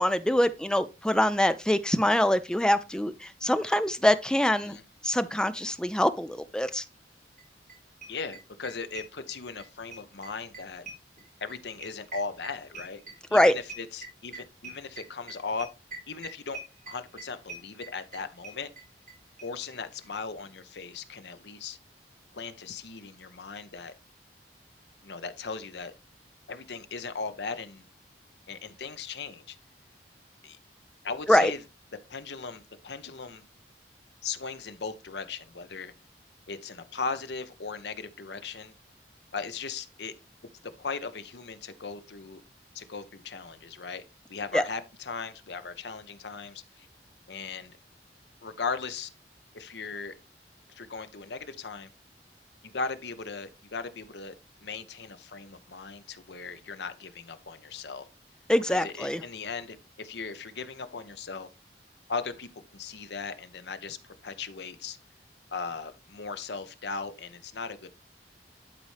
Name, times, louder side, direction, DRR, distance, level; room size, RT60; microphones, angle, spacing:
voice 1, 0.0-4.8 5.0-6.8 13.3-13.5 31.3-31.5 44.5-44.6 58.5-59.2, left 1 dB, 5° left, 0.4 m, -24 dB
sound 1, 7.4-7.5 7.7-9.7 9.9-19.1 19.4-19.5 19.7-19.8 20.0-20.1, right 3 dB, 45° right, 4.0 m, -43 dB
voice 2, 8.1-10.9 11.4-13.0 13.3-15.7 16.1-16.6 16.9-18.7 19.4-21.8 22.3-23.9 25.0-25.9 26.5-27.9 28.5-29.6 30.4-30.6 31.0-31.6 32.1-33.4 34.2-35.9 36.5-38.7 39.3-40.1 40.6-42.4 42.7-44.0 44.3-46.9 47.3-47.8 48.4-49.1 49.5-50.1 50.7-51.9 52.6-54.3 54.6-58.1 58.7-61.5 62.1-65.0 65.5-67.9, left 4 dB, 75° left, 0.8 m, -38 dB
11.5 x 4.2 x 3.2 m
head